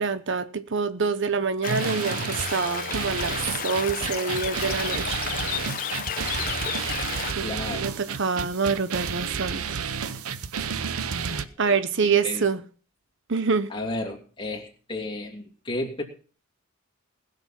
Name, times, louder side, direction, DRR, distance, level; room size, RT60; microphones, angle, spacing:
voice 1, 0.0-5.2 7.3-9.8 11.6-12.6 13.3-13.7, right 5 dB, 55° right, 0.7 m, -26 dB
Stream, 1.6-7.3, left 7 dB, 40° left, 0.9 m, -33 dB
sound 1, 1.7-11.4, right 6 dB, 90° right, 0.8 m, -31 dB
sound 2, 3.6-7.1 7.6-7.7 8.2-8.3 8.6-8.7, left 12 dB, 80° left, 1.1 m, -35 dB
voice 2, 7.4-7.9 11.6-11.8 12.0-12.4 13.7-16.0, left 2 dB, 25° left, 2.8 m, -33 dB
20.0 x 6.8 x 5.9 m
head